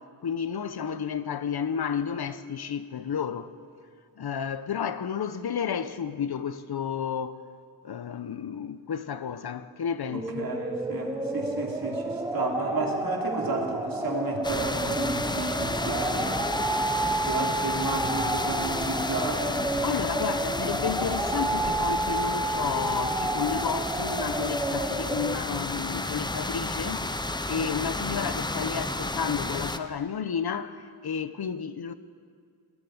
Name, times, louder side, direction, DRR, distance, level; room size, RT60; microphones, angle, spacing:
voice 1, 0.2-3.5 4.2-7.4 7.8-10.5 19.8-27.2 27.5-31.9, left 7 dB, 75° left, 0.9 m, -32 dB
sound 1, 10.1-25.4, right 2 dB, 10° right, 1.0 m, -30 dB
voice 2, 10.1-16.4 17.2-19.7, right 3 dB, 60° right, 3.3 m, -32 dB
sound 2, 14.4-29.8, left 2 dB, 10° left, 0.6 m, -32 dB
20.0 x 14.5 x 9.6 m
wide cardioid pair, 155°, 39 cm